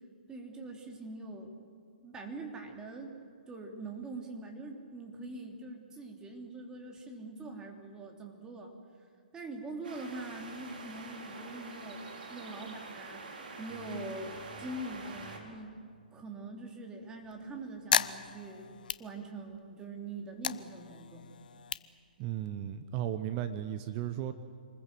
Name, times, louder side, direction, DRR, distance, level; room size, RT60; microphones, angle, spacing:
voice 1, 0.3-1.5 2.0-3.2 3.5-8.7 9.3-12.0 12.3-15.8 16.1-18.7 19.0-21.2, right 2 dB, 15° right, 1 dB, 3.3 m, -43 dB
sound 1, 9.8-15.4, right 3 dB, 65° right, 4.1 m, -46 dB
sound 2, 17.2-19.7 20.1-22.8, left 7 dB, 65° left, 0.8 m, -35 dB
voice 2, 22.2-24.3, right 11 dB, 30° right, 11 dB, 0.9 m, -35 dB
27.0 x 20.5 x 7.7 m, 2.1 s
figure-of-eight pair, 125°, 5 cm